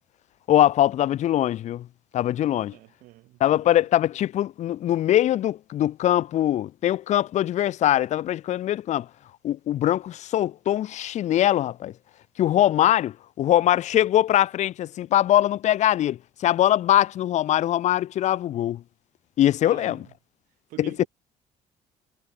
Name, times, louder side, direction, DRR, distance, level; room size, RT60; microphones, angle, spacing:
voice 1, 0.5-1.9 2.1-2.7 3.4-9.1 9.4-11.9 12.4-18.8 19.4-20.0 20.8-21.0, left 12 dB, 60° left, 0.6 m, -22 dB
voice 2, 2.5-3.8 19.6-20.1 20.7-21.1, right 18 dB, 80° right, 3.0 m, -46 dB
supercardioid pair, 85°, 14 cm